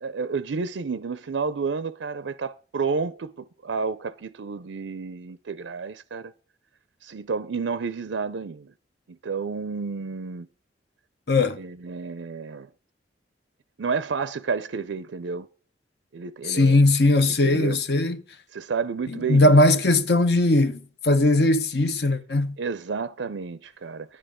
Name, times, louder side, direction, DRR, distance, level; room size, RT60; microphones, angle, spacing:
voice 1, 0.0-6.3 7.0-8.7 9.1-10.5 11.6-12.7 13.8-15.5 16.1-16.8 17.4-17.8 18.5-19.6 22.6-24.2, right 5 dB, 90° right, 0.5 m, -30 dB
voice 2, 11.3-11.6 16.5-18.2 19.1-22.6, left 2 dB, 60° left, 1.0 m, -19 dB
11.5 x 10.0 x 3.7 m
head